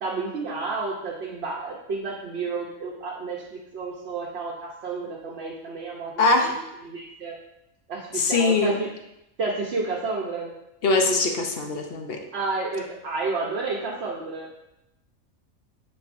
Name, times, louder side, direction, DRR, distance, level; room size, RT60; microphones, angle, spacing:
voice 1, 0.0-6.5 6.8-7.3 7.9-8.9 9.4-10.5 12.3-14.5, right 3 dB, 55° right, -4 dB, 1.0 m, -31 dB
voice 2, 6.2-6.5 8.1-8.8 10.8-12.2, left 3 dB, 55° left, 3 dB, 0.8 m, -22 dB
9.3 x 4.2 x 2.6 m, 0.86 s
omnidirectional pair, 1.5 m